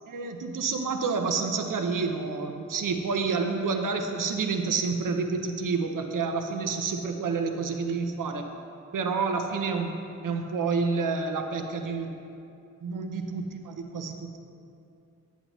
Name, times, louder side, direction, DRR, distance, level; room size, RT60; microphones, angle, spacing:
voice 1, 0.1-8.5 8.9-12.1 12.8-14.4, right 4 dB, 90° right, 5 dB, 0.7 m, -29 dB
9.6 x 9.3 x 3.0 m, 2.6 s
wide cardioid pair, 165°, 31 cm